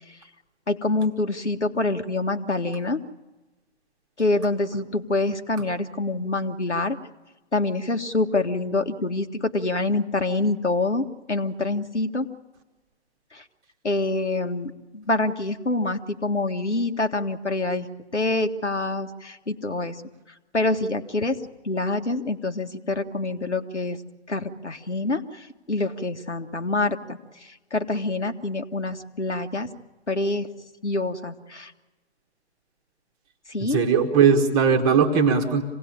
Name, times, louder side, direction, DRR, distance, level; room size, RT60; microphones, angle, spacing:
voice 1, 0.7-3.0 4.2-7.0 7.5-12.3 13.3-13.4 13.8-17.9 18.1-20.0 20.5-21.4 21.6-24.0 24.3-29.7 30.1-30.5 30.8-31.7 33.5-33.8, left 2 dB, 85° left, 6 dB, 1.9 m, -26 dB
voice 2, 33.7-35.6, right 6 dB, 10° right, 4 dB, 1.2 m, -19 dB
26.5 x 18.5 x 8.7 m, 1.1 s
figure-of-eight pair, 145°, 34 cm